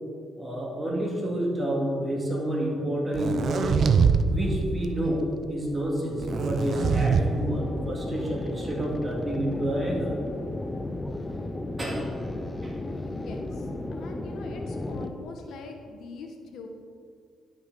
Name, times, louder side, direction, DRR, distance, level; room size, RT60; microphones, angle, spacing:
voice 1, 0.4-3.8 4.3-10.2 11.8-12.1 12.6-12.7, right 1 dB, 25° right, -2 dB, 2.3 m, -29 dB
sound 1, 3.1-4.3 4.6-5.0 6.2-7.2, right 6 dB, 55° right, 0.5 m, -23 dB
sound 2, 6.3-15.1, left 2 dB, 20° left, 0.6 m, -34 dB
voice 2, 13.1-13.6 13.9-16.7, left 4 dB, 75° left, 3 dB, 1.1 m, -43 dB
11.5 x 6.0 x 4.1 m, 2.2 s
cardioid pair, 90°, 0 cm